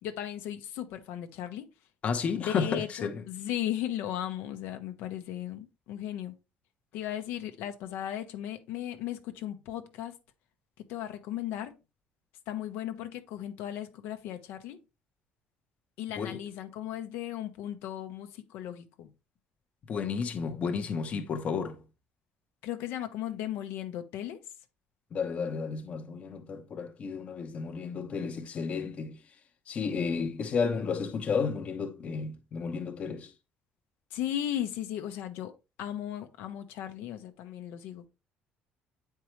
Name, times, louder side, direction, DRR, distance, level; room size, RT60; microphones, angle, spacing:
voice 1, 0.0-1.7 2.4-6.3 6.9-10.1 10.8-11.7 12.5-14.8 16.0-19.1 22.6-24.4 34.1-35.5 35.8-38.1, left 11 dB, 85° left, 0.9 m, -36 dB
voice 2, 2.0-3.2 16.2-16.4 19.9-21.8 25.1-29.2 29.7-33.3, left 5 dB, 35° left, 0.8 m, -32 dB
8.4 x 4.6 x 3.1 m
cardioid pair, 155°, 4 cm